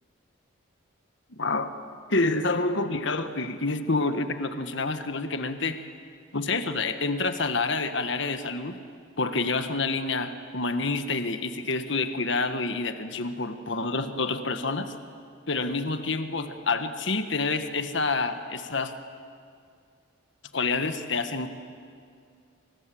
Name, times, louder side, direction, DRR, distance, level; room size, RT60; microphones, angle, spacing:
voice 1, 1.4-1.7 2.1-5.9 6.3-8.8 9.2-14.9 15.5-18.9 20.5-21.5, left 3 dB, 60° left, 8 dB, 1.5 m, -28 dB
28.5 x 26.5 x 7.8 m, 2.3 s
head